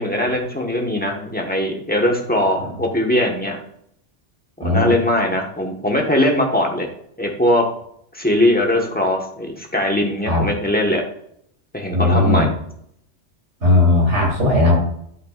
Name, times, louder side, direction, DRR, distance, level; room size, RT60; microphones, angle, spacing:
voice 1, 0.0-3.6 4.6-6.9 7.2-7.7 8.1-11.0 11.7-12.5, left 1 dB, 10° left, 1 dB, 1.3 m, -20 dB
voice 2, 11.9-12.4 13.6-14.8, left 2 dB, 80° right, -3 dB, 3.6 m, -16 dB
12.0 x 5.8 x 2.5 m, 0.69 s
omnidirectional pair, 1.2 m